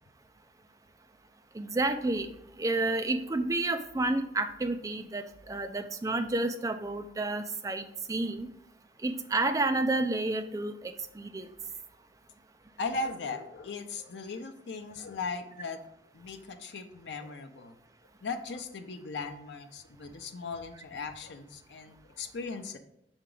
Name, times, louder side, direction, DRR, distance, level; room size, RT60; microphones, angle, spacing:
voice 1, 1.5-2.3 2.6-8.5 9.0-11.5, right 2 dB, 20° right, 7 dB, 0.4 m, -30 dB
voice 2, 12.8-15.8 16.1-17.8 18.2-22.8, left 4 dB, 80° left, 6 dB, 0.6 m, -38 dB
5.9 x 4.4 x 3.8 m, 0.78 s
head